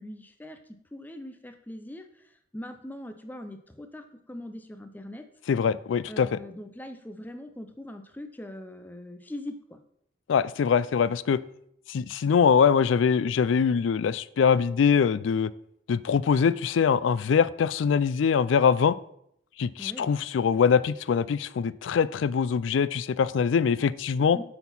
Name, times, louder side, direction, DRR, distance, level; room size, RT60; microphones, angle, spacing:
voice 1, 0.0-5.2 6.1-9.8 19.8-20.2 24.3-24.4, left 1 dB, 10° left, 7 dB, 0.5 m, -41 dB
voice 2, 5.5-6.4 10.3-11.4 11.9-15.5 15.9-18.9 19.6-24.4, left 6 dB, 80° left, 18 dB, 0.3 m, -23 dB
8.0 x 4.5 x 5.5 m, 0.71 s
head